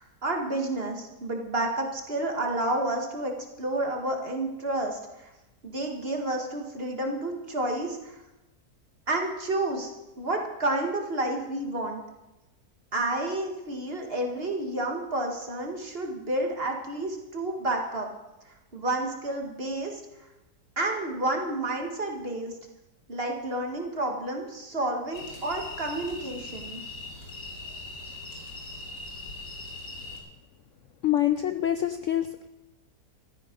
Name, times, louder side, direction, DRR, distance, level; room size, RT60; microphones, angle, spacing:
voice 1, 0.0-3.3 3.6-5.3 5.6-8.2 9.1-12.0 12.9-18.1 18.5-20.0 20.8-22.5 23.1-26.8, right 2 dB, 35° right, 2 dB, 2.1 m, -30 dB
sound 1, 25.1-30.2, left 2 dB, 85° left, 3.4 m, -40 dB
voice 2, 31.0-32.5, left 12 dB, 65° left, 9 dB, 0.8 m, -26 dB
15.0 x 13.5 x 5.3 m, 1.0 s
omnidirectional pair, 1.8 m